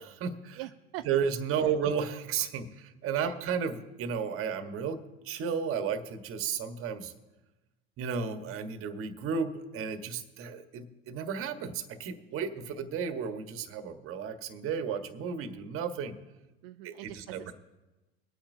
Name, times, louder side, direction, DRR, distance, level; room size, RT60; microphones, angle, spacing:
voice 1, 0.0-0.6 1.0-7.1 8.0-16.1 16.8-17.5, right 6 dB, 45° right, 7 dB, 1.4 m, -33 dB
voice 2, 0.5-1.1 1.5-1.8 3.2-3.4 12.3-12.4 16.6-17.5, right 15 dB, 65° right, 6 dB, 0.6 m, -43 dB
23.0 x 8.8 x 2.7 m, 1.1 s
hypercardioid pair, 95°, 32 cm